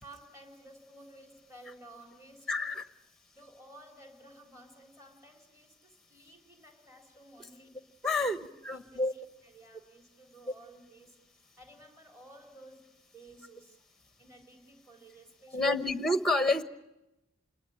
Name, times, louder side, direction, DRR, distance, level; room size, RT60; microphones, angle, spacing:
voice 1, 0.0-2.8 3.3-7.9 8.2-8.4 8.7-11.2 11.6-13.8 14.2-15.9, right 1 dB, 15° right, 3 dB, 3.9 m, -54 dB
voice 2, 2.5-2.8 8.0-8.4 8.6-9.1 15.5-16.6, left 2 dB, ahead, 9 dB, 1.1 m, -28 dB
28.5 x 21.0 x 8.9 m, 0.95 s
head